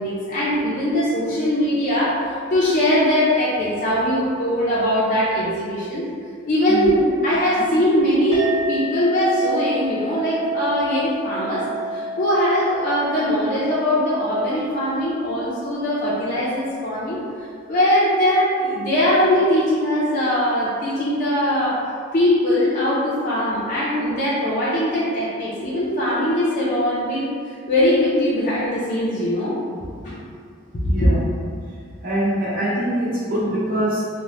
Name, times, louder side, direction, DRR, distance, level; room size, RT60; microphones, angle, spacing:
voice 1, 0.0-6.1 6.5-11.6 11.9-17.2 17.7-21.8 22.1-27.3 27.7-29.6 30.0-30.1 30.8-31.1, left 1 dB, 40° left, -9 dB, 0.4 m, -21 dB
Chink clink, 8.3-17.0, right 1 dB, 70° right, 1.4 m, -31 dB
voice 2, 30.8-31.2 31.7-34.1, right 1 dB, 45° right, -10 dB, 0.9 m, -24 dB
2.7 x 2.1 x 3.0 m, 2.2 s
head